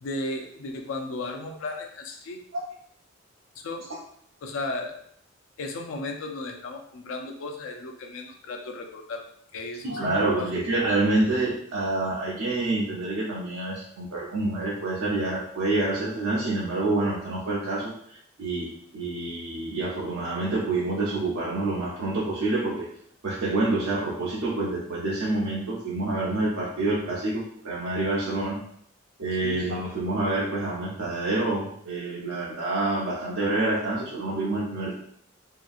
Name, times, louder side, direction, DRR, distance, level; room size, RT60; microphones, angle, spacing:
voice 1, 0.0-2.4 3.6-3.8 4.4-4.9 5.6-9.2 9.5-10.7 29.4-29.6, left 2 dB, 75° left, 3 dB, 0.4 m, -35 dB
voice 2, 9.8-22.9 23.2-28.6 29.2-34.9, right 2 dB, 80° right, -6 dB, 0.6 m, -27 dB
2.7 x 2.3 x 2.5 m, 0.67 s
head